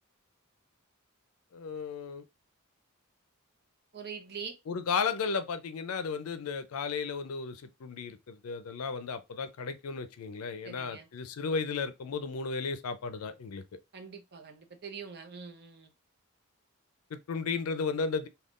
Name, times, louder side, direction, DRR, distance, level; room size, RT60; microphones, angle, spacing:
voice 1, 1.5-2.2 4.7-13.6 17.1-18.3, left 5 dB, 90° left, 0.4 m, -34 dB
voice 2, 3.9-4.5 10.6-11.1 13.9-15.9, right 6 dB, 50° right, 0.7 m, -43 dB
3.5 x 2.3 x 2.4 m
head